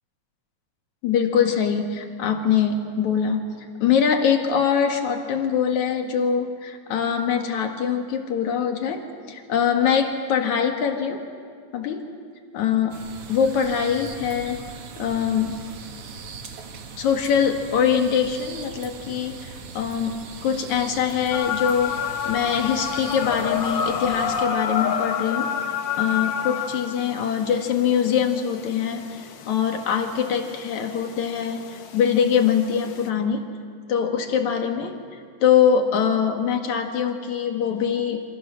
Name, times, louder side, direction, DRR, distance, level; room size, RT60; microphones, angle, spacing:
voice 1, 1.0-11.2 11.7-12.0 12.5-13.0 13.3-14.6 15.0-15.7 17.0-33.4 33.9-35.0 35.4-38.2, left 7 dB, 75° left, 4 dB, 3.1 m, -23 dB
sound 1, 12.9-24.5, right 5 dB, 55° right, 2.4 m, -40 dB
sound 2, 21.3-33.1, left 7 dB, 55° left, 1.3 m, -30 dB
27.0 x 26.5 x 6.6 m, 2.3 s
omnidirectional pair, 3.4 m